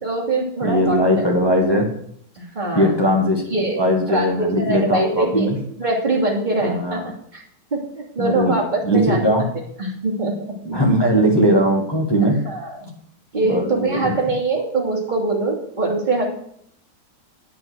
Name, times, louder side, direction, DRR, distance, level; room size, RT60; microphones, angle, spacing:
voice 1, 0.0-1.0 2.4-3.0 3.5-3.8 4.1-5.5 5.8-7.0 7.3-7.4 7.7-9.3 9.8-10.8 12.2-12.9 13.3-16.2, right 2 dB, 25° right, -3 dB, 3.1 m, -23 dB
voice 2, 0.6-1.9 2.8-3.4 3.7-5.6 6.6-7.0 8.2-8.6 8.8-9.4 10.7-12.4 13.4-14.1, equal, 15° left, 0 dB, 1.8 m, -19 dB
8.8 x 8.6 x 6.4 m, 0.66 s
omnidirectional pair, 1.9 m